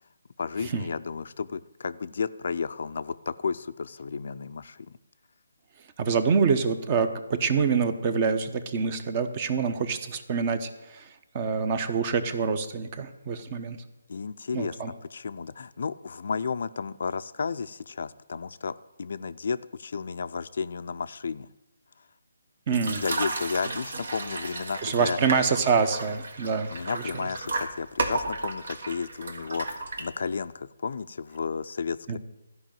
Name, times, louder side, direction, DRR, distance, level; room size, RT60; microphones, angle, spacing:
voice 1, 0.4-4.8 14.1-14.8 15.1-18.7 19.0-21.5 22.7-25.2 26.7-32.2, left 5 dB, 60° left, 13 dB, 0.4 m, -33 dB
voice 2, 6.0-11.1 11.3-13.8 14.5-14.9 22.7-23.0 24.8-27.0 32.1-32.2, right 5 dB, 30° right, 10 dB, 0.8 m, -26 dB
sound 1, 22.7-30.5, right 3 dB, 65° right, 1.5 m, -34 dB
13.0 x 5.4 x 8.9 m, 1.0 s
hypercardioid pair, 160°, 0 cm